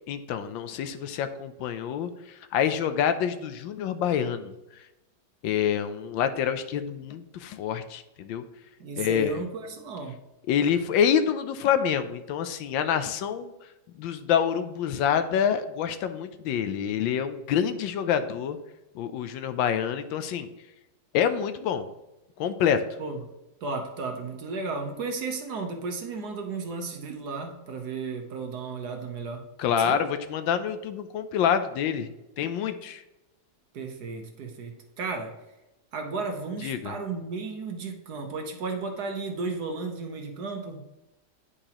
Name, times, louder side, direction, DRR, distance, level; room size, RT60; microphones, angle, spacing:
voice 1, 0.1-4.5 5.4-8.4 9.0-9.4 10.5-13.5 14.0-18.6 18.9-20.5 21.1-21.9 22.4-22.8 29.6-33.0 36.6-36.9, left 8 dB, 80° left, 10 dB, 1.3 m, -27 dB
voice 2, 8.8-10.2 23.0-23.2 23.6-29.4 29.8-30.0 33.7-35.4 35.9-40.8, right 4 dB, 60° right, 3 dB, 1.3 m, -34 dB
9.9 x 4.8 x 2.9 m, 0.96 s
omnidirectional pair, 2.1 m